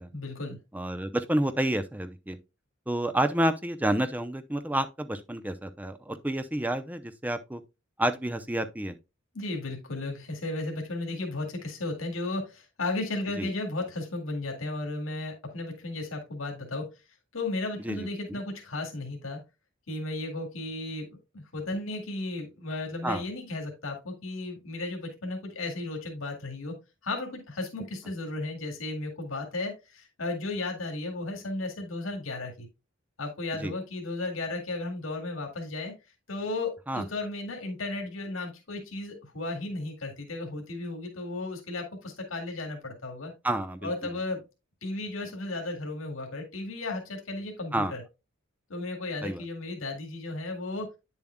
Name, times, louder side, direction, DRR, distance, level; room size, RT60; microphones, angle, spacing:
voice 1, 0.1-0.6 9.3-16.9 17.3-19.4 19.9-26.8 27.0-32.7 33.2-35.9 36.3-43.3 43.8-44.5 44.8-48.0 48.7-50.9, left 2 dB, 85° left, 2.1 m, -34 dB
voice 2, 0.7-2.4 2.9-7.6 8.0-9.0 13.4-13.5 17.8-18.4 23.0-23.2 33.6-33.7 36.9-37.0 43.4-43.9 47.7-47.9 49.2-49.4, right 1 dB, 10° right, 0.5 m, -29 dB
9.3 x 7.1 x 2.2 m
head